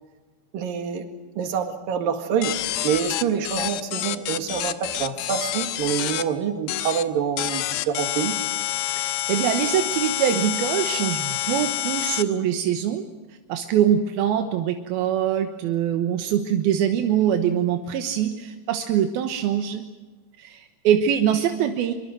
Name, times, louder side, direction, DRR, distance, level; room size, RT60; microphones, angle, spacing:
voice 1, 0.5-1.0 1.4-2.6 2.8-8.3, right 7 dB, 70° right, 6 dB, 3.6 m, -26 dB
sound 1, 2.4-6.2 6.7-7.0 7.4-12.2, left 14 dB, 85° left, 2.9 m, -27 dB
voice 2, 9.0-13.0 13.5-19.8 20.4-21.9, right 9 dB, 85° right, 6 dB, 3.1 m, -23 dB
23.5 x 23.5 x 7.8 m, 1.2 s
omnidirectional pair, 4.3 m